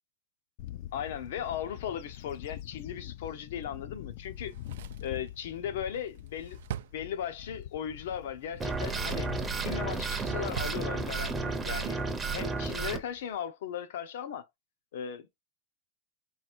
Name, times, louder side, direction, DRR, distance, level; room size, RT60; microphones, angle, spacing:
Bird / Wind, 0.6-13.4, left 12 dB, 50° left, 0.4 m, -45 dB
voice 1, 0.9-4.5 5.0-6.6 6.9-9.3 9.6-14.5 14.9-15.3, left 9 dB, 75° left, 0.8 m, -37 dB
Drawer open or close, 4.3-7.6 8.5-9.4 9.8-10.8 11.1-11.2, right 12 dB, 75° right, 0.3 m, -44 dB
sound 1, 8.6-13.0, right 4 dB, 10° right, 0.6 m, -32 dB
4.0 x 2.5 x 4.4 m
supercardioid pair, 165°, 0 cm